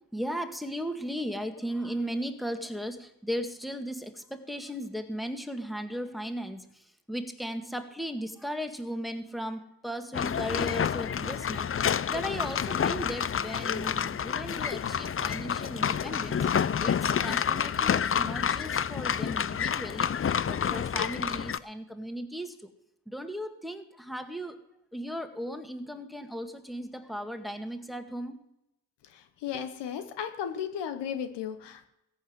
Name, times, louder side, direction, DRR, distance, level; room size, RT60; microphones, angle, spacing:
voice 1, 0.1-16.5 16.8-20.1 20.4-22.7 23.1-24.6 24.9-28.4, equal, ahead, 6 dB, 1.9 m, -36 dB
sound 1, 10.1-21.6, left 8 dB, 30° left, 0.5 m, -29 dB
voice 2, 29.4-31.9, left 8 dB, 80° left, 9 dB, 1.1 m, -34 dB
14.5 x 5.6 x 9.4 m, 0.84 s
supercardioid pair, 40°, 41 cm